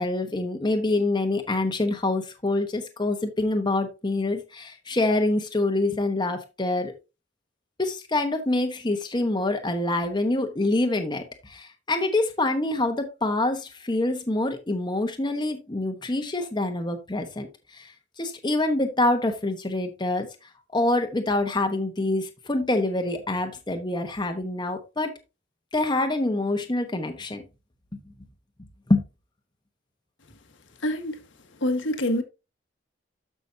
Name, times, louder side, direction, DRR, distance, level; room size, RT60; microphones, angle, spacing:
voice 1, 0.0-6.9 7.8-17.5 17.7-17.9 18.2-20.3 20.7-25.1 25.7-27.4 28.9-29.0, left 2 dB, 25° left, 1.2 m, -26 dB
voice 2, 30.8-31.2 31.6-32.2, left 1 dB, 70° left, 1.5 m, -25 dB
12.5 x 6.0 x 2.8 m
head